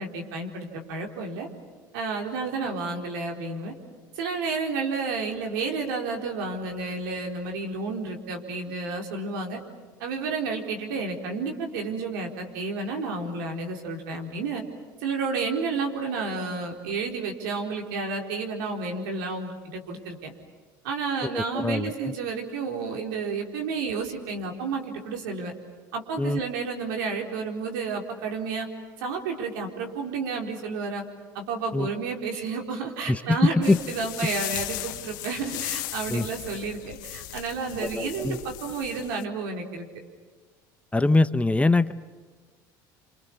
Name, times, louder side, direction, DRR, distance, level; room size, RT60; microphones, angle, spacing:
voice 1, 0.0-1.5 1.9-3.7 4.2-9.6 10.0-14.6 15.0-20.3 20.8-25.5 25.9-28.7 29.0-31.0 31.3-39.9, right 4 dB, 80° right, 2 dB, 4.3 m, -31 dB
voice 2, 21.2-22.1 26.2-26.4 31.7-31.9 33.1-33.8 36.1-36.2 37.9-38.4 40.9-41.9, left 2 dB, 10° left, 13 dB, 0.8 m, -23 dB
sound 1, 33.6-39.2, left 16 dB, 80° left, 1.1 m, -36 dB
29.5 x 27.0 x 7.2 m, 1.4 s
hypercardioid pair, 80°, 11 cm